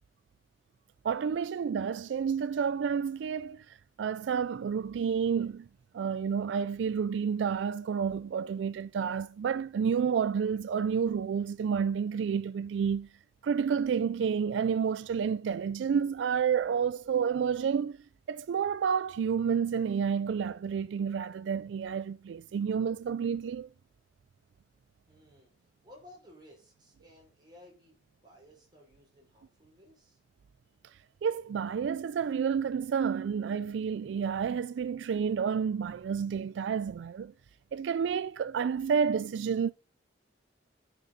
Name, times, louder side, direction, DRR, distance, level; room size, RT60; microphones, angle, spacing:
voice 1, 1.0-5.7 5.9-13.1 13.4-18.0 18.3-23.7 31.2-37.3 37.7-39.7, right 7 dB, 85° right, 0.3 m, -30 dB
voice 2, 25.1-25.5 25.8-30.2, left 1 dB, 25° right, 5.2 m, -57 dB
9.8 x 6.7 x 3.9 m
head